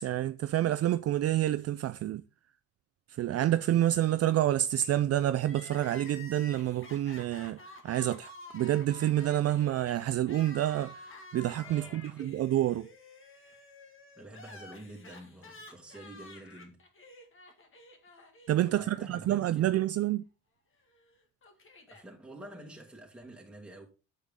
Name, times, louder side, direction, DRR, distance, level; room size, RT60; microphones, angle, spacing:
voice 1, 0.0-2.2 3.1-12.9 18.5-20.2, right 13 dB, 55° right, 0.4 m, -28 dB
Crying sobbing, 5.4-19.5 19.8-19.9 20.9-22.0, left 2 dB, 40° left, 1.8 m, -51 dB
voice 2, 11.6-12.2 14.2-16.8 18.6-19.8 21.6-23.9, right 1 dB, 5° right, 2.6 m, -49 dB
8.0 x 7.0 x 3.6 m
cardioid pair, 105°, 30 cm